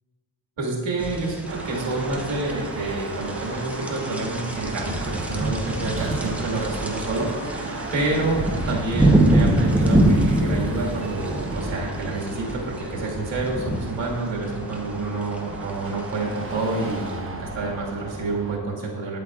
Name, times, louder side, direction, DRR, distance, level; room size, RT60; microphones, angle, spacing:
voice 1, 0.6-19.2, right 2 dB, 80° right, -3 dB, 1.9 m, -28 dB
sound 1, 1.0-17.2, right 1 dB, 5° right, 0.7 m, -26 dB
Car passing by / Traffic noise roadway noise / Engine, 1.5-18.6, right 2 dB, 30° right, 0.9 m, -34 dB
9.1 x 8.1 x 2.4 m, 1.5 s
cardioid pair, 100°, 44 cm